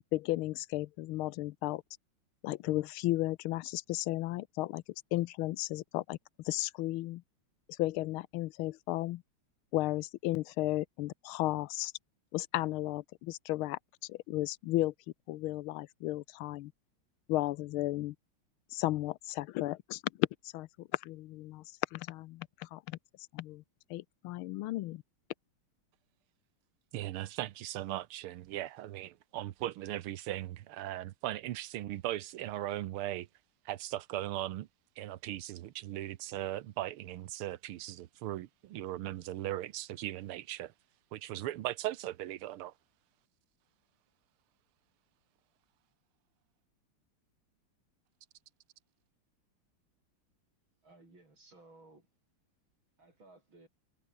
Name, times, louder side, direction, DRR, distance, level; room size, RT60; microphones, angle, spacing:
voice 1, 0.1-1.8 2.4-4.8 5.1-6.2 6.4-7.2 7.8-9.2 9.7-11.9 12.3-14.9 15.3-16.7 17.3-18.1 18.7-21.6 21.9-23.0 23.3-23.6 23.9-25.0, left 17 dB, 80° left, 1.5 m, -34 dB
voice 2, 26.9-33.3 33.6-34.7 35.0-40.7 41.1-42.7, right 14 dB, 90° right, 1.8 m, -38 dB
voice 3, 50.8-52.1 53.0-53.7, right 2 dB, 65° right, 8.3 m, -58 dB
omnidirectional pair, 2.3 m